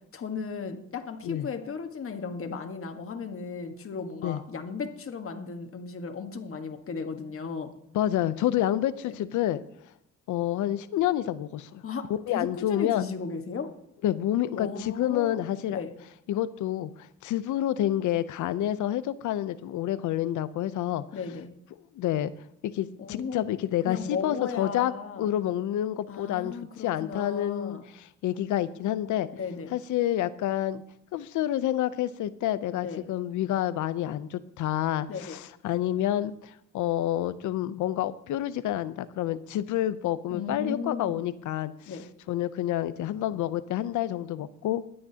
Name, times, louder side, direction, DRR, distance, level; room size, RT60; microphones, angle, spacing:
voice 1, 0.1-7.7 9.1-9.3 11.8-13.7 14.6-15.9 21.1-21.5 23.0-23.4 23.9-25.4 26.1-27.8 29.3-29.7 32.8-33.1 35.1-35.4 40.3-41.1 41.9-42.0, left 5 dB, 45° left, 6 dB, 1.5 m, -36 dB
voice 2, 7.9-9.6 10.3-11.8 12.3-13.1 14.0-15.8 16.3-21.0 21.9-22.3 22.6-24.9 25.2-27.8 28.2-29.3 29.7-30.8 31.1-41.7 42.3-44.8, left 12 dB, 80° left, 15 dB, 0.7 m, -28 dB
22.0 x 8.7 x 2.9 m, 0.76 s
cardioid pair, 90°, 30 cm